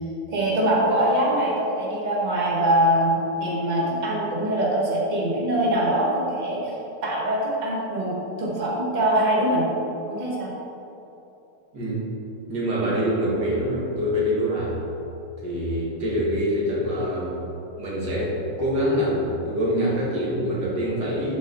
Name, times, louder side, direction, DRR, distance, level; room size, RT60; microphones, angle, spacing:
voice 1, 0.3-6.7 7.0-9.7 10.1-10.5, right 1 dB, 25° right, -4 dB, 1.5 m, -23 dB
voice 2, 11.7-12.1 12.5-14.8 15.4-17.4 17.8-21.4, equal, 85° right, -6 dB, 2.5 m, -25 dB
11.5 x 4.7 x 4.0 m, 3.0 s
omnidirectional pair, 1.8 m